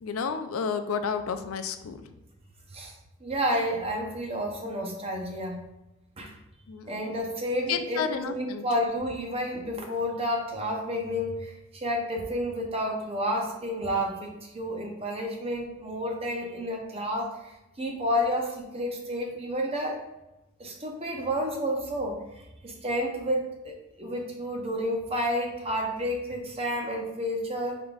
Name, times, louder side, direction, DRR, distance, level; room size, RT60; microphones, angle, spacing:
voice 1, 0.0-2.0 6.7-6.9 7.7-8.6, left 6 dB, 80° left, 9 dB, 0.4 m, -31 dB
voice 2, 3.2-5.6 6.2-6.3 6.9-20.0 20.6-27.8, equal, 30° right, 1 dB, 0.7 m, -30 dB
5.1 x 3.7 x 2.4 m, 0.97 s
head